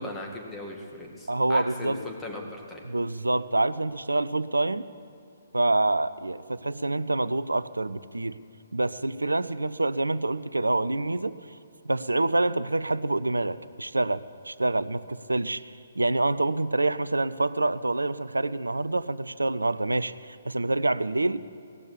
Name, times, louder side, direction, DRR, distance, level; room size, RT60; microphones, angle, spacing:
voice 1, 0.0-2.8, left 2 dB, 10° left, 0 dB, 2.0 m, -38 dB
voice 2, 1.3-2.0 2.8-4.9 5.5-8.4 8.7-11.4 11.9-15.6 16.0-21.4, right 2 dB, 80° right, 16 dB, 0.5 m, -26 dB
18.0 x 7.1 x 9.7 m, 2.6 s
figure-of-eight pair, 130°, 0 cm